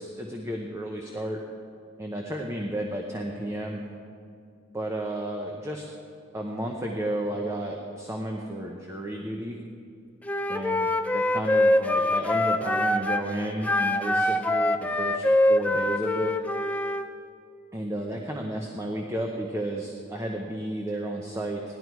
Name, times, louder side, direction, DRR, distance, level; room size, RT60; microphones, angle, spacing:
voice 1, 0.0-1.4 2.0-3.9 4.7-5.9 6.3-9.6 10.5-15.2 15.5-16.3 17.7-21.8, right 1 dB, 15° right, 1 dB, 0.9 m, -32 dB
Wind instrument woodwind instrument, 10.3-13.3 13.6-17.1, left 1 dB, 5° left, 0.4 m, -24 dB
17.0 x 12.0 x 4.7 m, 2.4 s
head